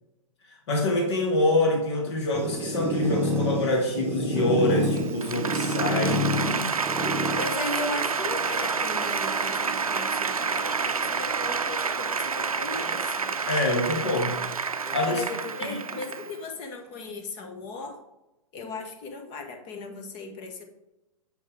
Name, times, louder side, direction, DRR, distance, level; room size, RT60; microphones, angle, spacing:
voice 1, 0.7-6.9 13.4-14.4 14.7-15.2 15.7-15.8, left 1 dB, 50° left, 0 dB, 2.3 m, -26 dB
sound 1, 2.3-11.8 12.6-13.1 13.5-13.6 13.9-14.0 14.8-16.0, equal, 10° right, 1.2 m, -31 dB
Applause, 4.8-16.4, right 5 dB, 80° right, 0.6 m, -29 dB
voice 2, 7.4-13.3 15.0-18.0 18.5-20.6, left 3 dB, 30° left, 4 dB, 1.2 m, -37 dB
7.0 x 5.3 x 3.4 m, 0.97 s
figure-of-eight pair, 115°, 18 cm